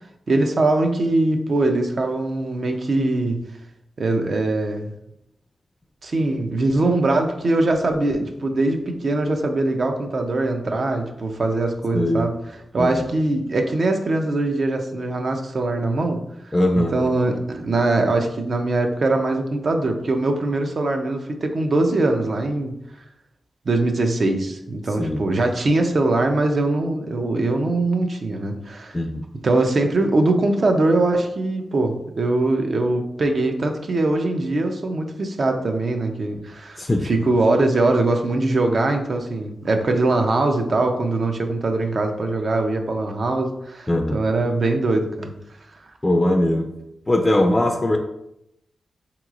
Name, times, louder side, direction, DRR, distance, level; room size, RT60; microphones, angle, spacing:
voice 1, 0.3-3.4 4.0-4.9 6.0-16.2 16.7-22.7 23.7-29.0 29.4-45.3, right 2 dB, 60° right, 4 dB, 0.5 m, -22 dB
voice 2, 11.9-12.3 12.8-13.0 16.5-16.9 25.0-25.2 28.9-29.2 36.8-37.1 43.9-44.2 46.0-46.7 47.1-48.0, left 1 dB, 25° left, 3 dB, 0.3 m, -20 dB
3.8 x 2.9 x 2.4 m, 0.82 s
cardioid pair, 70°, 0 cm